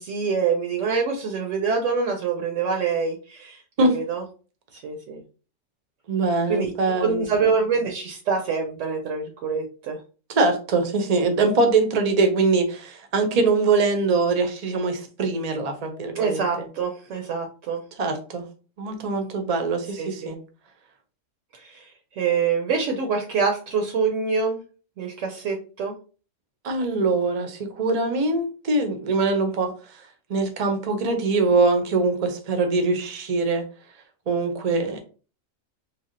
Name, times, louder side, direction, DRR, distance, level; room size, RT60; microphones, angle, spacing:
voice 1, 0.0-4.2 4.7-5.2 6.5-10.0 16.1-17.8 20.0-20.3 21.5-21.8 22.2-24.6 25.0-25.9 34.7-35.0, right 5 dB, 75° right, 2 dB, 0.9 m, -26 dB
voice 2, 6.1-7.3 10.3-16.4 18.0-18.4 18.8-20.4 26.6-29.7 30.3-33.6 34.3-35.0, right 3 dB, 45° right, 6 dB, 0.5 m, -23 dB
3.3 x 2.3 x 2.5 m, 0.36 s
omnidirectional pair, 1.3 m